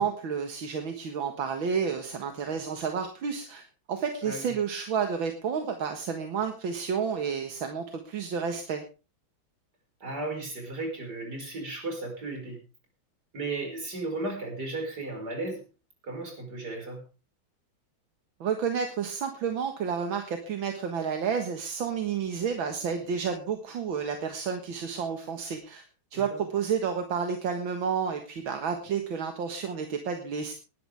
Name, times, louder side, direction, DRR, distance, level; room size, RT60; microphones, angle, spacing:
voice 1, 0.0-8.8 18.4-25.8 26.1-30.5, right 6 dB, 80° right, 5 dB, 2.3 m, -30 dB
voice 2, 4.2-4.5 10.0-12.6 13.3-15.6 16.0-17.0 26.1-26.4, right 2 dB, 55° right, 2 dB, 5.8 m, -35 dB
19.0 x 12.0 x 3.5 m, 0.33 s
omnidirectional pair, 2.2 m